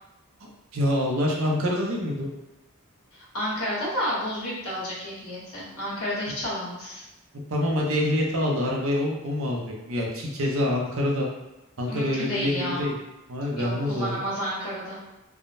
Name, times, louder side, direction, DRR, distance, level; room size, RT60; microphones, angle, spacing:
voice 1, 0.7-2.3 7.5-9.6 9.9-11.3 11.8-12.9 13.3-14.2, left 1 dB, 65° right, -2 dB, 0.6 m, -26 dB
voice 2, 3.1-7.0 11.9-12.9 13.6-15.0, equal, 85° left, -6 dB, 1.2 m, -31 dB
3.5 x 2.1 x 2.5 m, 0.97 s
head